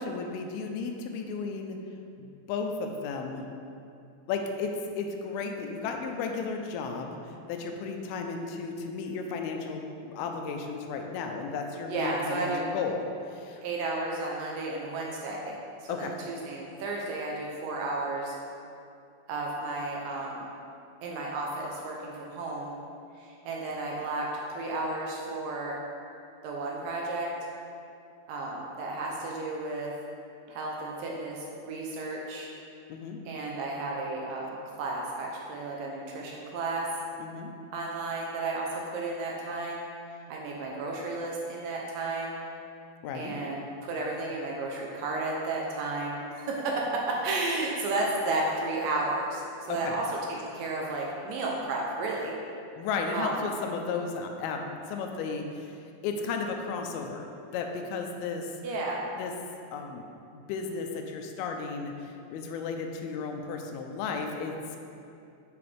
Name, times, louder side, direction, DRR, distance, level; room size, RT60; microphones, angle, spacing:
voice 1, 0.0-1.8 2.2-3.5 4.3-7.2 7.5-13.6 15.9-16.1 32.9-33.2 37.2-37.5 43.0-43.4 49.7-50.0 52.7-55.7 56.0-58.5 59.2-59.3 59.7-60.1 60.3-64.8, left 4 dB, 85° left, 3 dB, 2.5 m, -34 dB
voice 2, 11.9-12.7 13.6-18.4 19.3-20.5 21.0-22.7 23.2-25.8 26.4-27.3 28.3-29.9 30.5-32.5 33.3-36.9 37.7-39.9 40.3-42.4 43.1-52.4 53.1-53.4 58.6-59.1, right 2 dB, 75° right, -2 dB, 2.2 m, -33 dB
7.1 x 6.8 x 3.3 m, 2.6 s
omnidirectional pair, 4.4 m